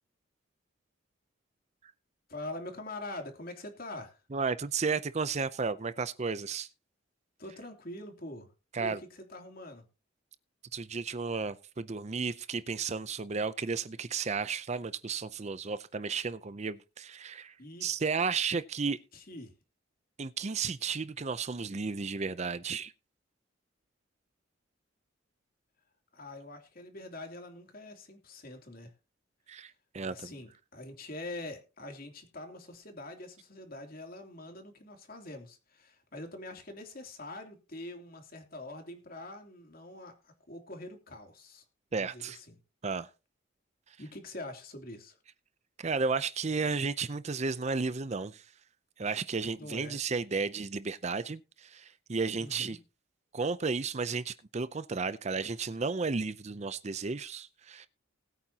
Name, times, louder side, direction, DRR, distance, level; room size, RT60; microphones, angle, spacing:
voice 1, 2.3-4.2 7.4-8.5 8.8-9.9 17.6-17.9 19.1-19.5 26.1-28.9 29.6-29.7 30.0-41.6 41.9-42.6 44.0-45.2 49.6-50.0 52.4-52.8, left 2 dB, 45° left, 3.0 m, -44 dB
voice 2, 4.3-6.7 8.7-9.0 10.7-17.6 17.8-19.0 20.2-22.9 29.5-30.3 41.9-42.4 42.8-43.1 43.9-44.0 45.8-48.5 49.0-52.8 53.3-57.9, right 4 dB, 35° right, 0.5 m, -33 dB
20.0 x 9.0 x 2.9 m
head